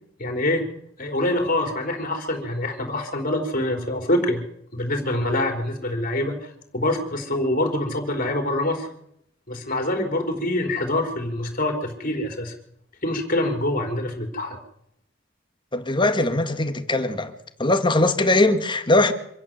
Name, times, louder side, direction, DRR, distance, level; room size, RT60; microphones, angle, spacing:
voice 1, 0.2-0.6 1.0-4.4 4.7-8.9 9.5-12.5 13.0-14.6, left 1 dB, 45° left, 4.5 m, -25 dB
voice 2, 15.7-17.3 17.6-19.1, left 2 dB, 25° left, 1.8 m, -20 dB
26.0 x 16.0 x 7.8 m
head